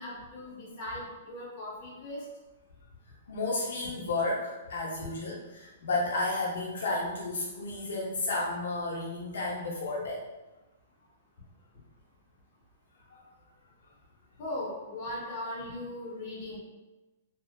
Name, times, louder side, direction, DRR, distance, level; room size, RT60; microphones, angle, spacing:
voice 1, 0.0-2.2 14.4-16.6, left 1 dB, 35° left, -6 dB, 1.0 m, -38 dB
voice 2, 3.3-10.2 13.1-13.2, left 2 dB, 85° left, -4 dB, 0.5 m, -32 dB
2.7 x 2.3 x 2.2 m, 1.1 s
hypercardioid pair, 160°, 0 cm